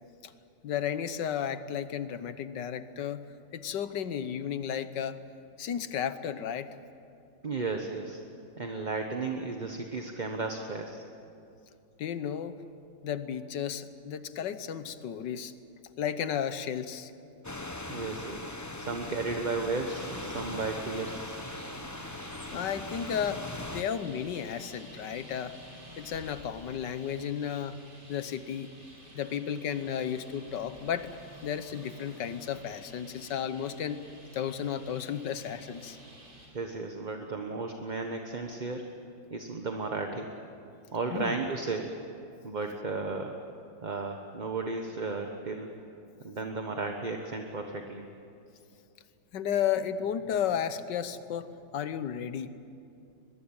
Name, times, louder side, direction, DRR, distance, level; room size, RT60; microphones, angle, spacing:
voice 1, 0.6-3.2 3.5-5.2 5.6-6.7 12.0-12.5 13.0-15.5 16.0-17.1 22.5-23.5 23.7-25.6 26.0-27.8 28.1-28.7 29.1-31.2 31.4-34.0 34.3-36.0 41.1-41.4 49.3-51.5 51.7-52.5, left 8 dB, 70° left, 12 dB, 1.6 m, -33 dB
voice 2, 7.4-8.2 8.6-11.0 17.9-18.5 18.8-21.3 36.5-38.8 39.3-40.3 40.9-41.9 42.4-43.4 43.8-45.7 46.2-48.0, right 3 dB, 30° right, 4 dB, 1.1 m, -34 dB
sound 1, 17.4-23.8, left 2 dB, 20° left, 0.5 m, -40 dB
Traffic noise roadway noise, 19.9-36.5, right 1 dB, 90° right, 5.9 m, -50 dB
22.5 x 22.0 x 8.8 m, 2.6 s
omnidirectional pair, 2.0 m